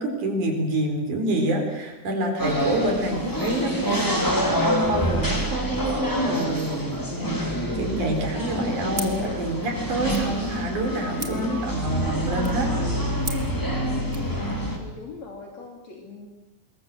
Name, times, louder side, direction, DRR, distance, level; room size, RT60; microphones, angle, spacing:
voice 1, 0.0-12.7, right 1 dB, 80° right, 3 dB, 5.7 m, -27 dB
sound 1, 2.4-14.8, equal, 5° left, 3.6 m, -27 dB
sound 2, 8.9-14.3, right 3 dB, 25° right, 2.7 m, -41 dB
voice 2, 14.8-16.3, left 4 dB, 60° left, 1 dB, 4.1 m, -41 dB
26.0 x 22.0 x 7.8 m, 0.94 s
omnidirectional pair, 3.5 m